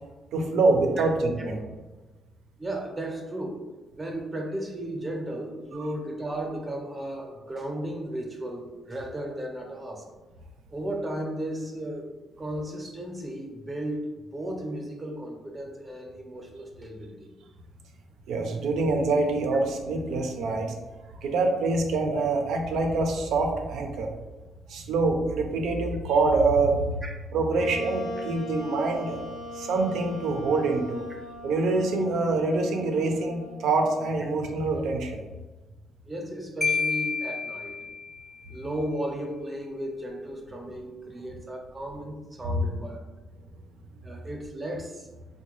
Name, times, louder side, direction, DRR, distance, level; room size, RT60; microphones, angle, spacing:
voice 1, 0.3-1.6 18.3-20.7 21.2-24.1 24.7-26.8 27.3-29.2 29.5-31.0 31.4-35.2, right 3 dB, 80° right, 3 dB, 0.5 m, -25 dB
voice 2, 2.6-3.6 3.9-10.0 10.7-12.1 12.4-17.3 27.0-27.1 36.1-37.8 38.5-43.0 44.0-45.1, right 1 dB, 25° right, 1 dB, 0.7 m, -35 dB
Wind instrument woodwind instrument, 27.6-35.0, left 1 dB, 75° left, 0.7 m, -40 dB
Marimba xylophone, 36.6-38.3, left 5 dB, 15° left, 0.5 m, -29 dB
3.8 x 2.2 x 3.0 m, 1.2 s
cardioid pair, 90°, 0 cm